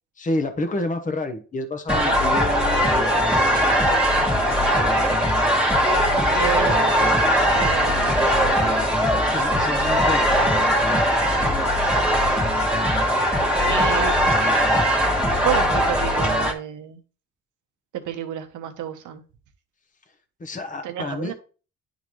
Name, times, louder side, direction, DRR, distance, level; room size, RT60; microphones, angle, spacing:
voice 1, 0.2-4.1 9.2-10.3 20.4-21.3, left 2 dB, 25° left, 1.0 m, -29 dB
sound 1, 1.9-16.5, equal, 5° right, 1.8 m, -20 dB
voice 2, 4.7-5.1 6.3-8.2 9.7-9.8 11.3-11.7 13.7-14.6 15.4-17.0 17.9-19.2 20.8-21.3, right 11 dB, 80° right, 1.1 m, -31 dB
10.5 x 3.9 x 3.2 m
cardioid pair, 90°, 30 cm